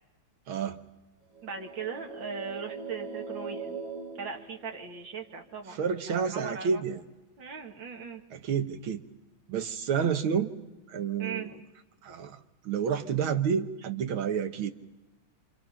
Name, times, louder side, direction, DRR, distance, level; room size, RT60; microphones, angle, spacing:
voice 1, 0.5-0.8 5.8-7.0 8.3-9.0 9.5-10.5 10.9-11.5 12.0-12.4 12.7-14.7, right 7 dB, 80° right, 8 dB, 2.0 m, -29 dB
sound 1, 1.3-5.2, right 5 dB, 40° right, 8.6 m, -40 dB
voice 2, 1.4-3.8 4.1-6.8 7.4-8.2 11.2-11.5, right 6 dB, 65° right, 3 dB, 2.8 m, -39 dB
27.0 x 27.0 x 5.7 m, 1.1 s
omnidirectional pair, 2.2 m